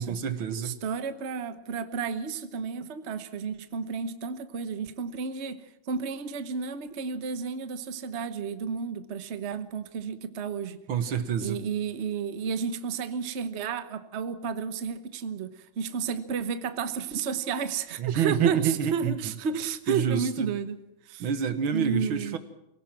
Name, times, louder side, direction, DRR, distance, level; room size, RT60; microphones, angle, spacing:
voice 1, 0.0-0.8 10.9-11.6 18.0-19.1 19.9-20.5 21.2-22.4, right 7 dB, 80° right, 10 dB, 2.2 m, -27 dB
voice 2, 0.6-10.8 11.4-20.8 21.0-21.3 21.6-22.4, right 6 dB, 40° right, 11 dB, 1.1 m, -32 dB
24.5 x 17.5 x 7.5 m, 0.89 s
omnidirectional pair, 2.2 m